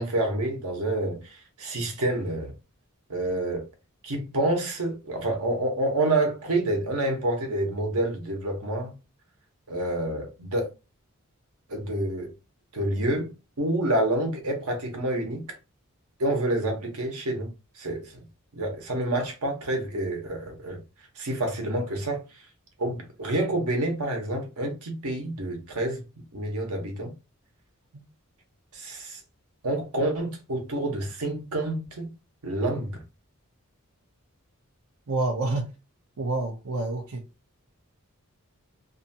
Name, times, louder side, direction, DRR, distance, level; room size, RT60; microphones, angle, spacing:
voice 1, 0.0-2.5 3.1-3.7 4.0-8.9 9.7-10.7 11.7-12.3 12.7-13.3 13.6-15.4 16.2-17.5 17.8-18.2 18.5-20.8 21.2-22.2 22.8-26.0 26.3-27.1 28.7-29.2 29.6-32.1 32.4-33.0, right 1 dB, 85° right, 0.9 m, -28 dB
voice 2, 35.1-35.7 36.2-37.2, right 2 dB, 70° right, 0.6 m, -28 dB
2.6 x 2.4 x 2.7 m
head